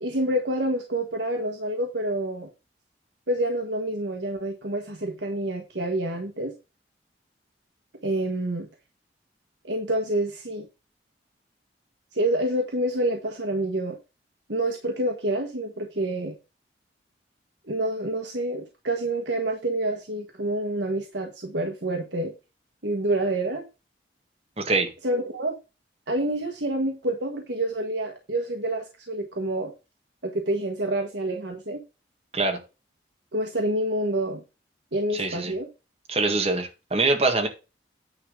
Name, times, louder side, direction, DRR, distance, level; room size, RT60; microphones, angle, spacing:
voice 1, 0.0-2.5 3.3-6.5 8.0-8.7 9.6-10.6 12.1-14.0 14.5-16.3 17.7-22.3 22.8-23.6 25.0-25.5 26.1-29.7 30.2-31.8 33.3-34.4 34.9-35.7, right 1 dB, 75° right, 2 dB, 1.4 m, -27 dB
voice 2, 24.6-24.9 32.3-32.6 35.1-35.5 36.1-37.5, right 3 dB, 35° right, 4 dB, 1.7 m, -24 dB
9.7 x 3.7 x 6.4 m, 0.29 s
head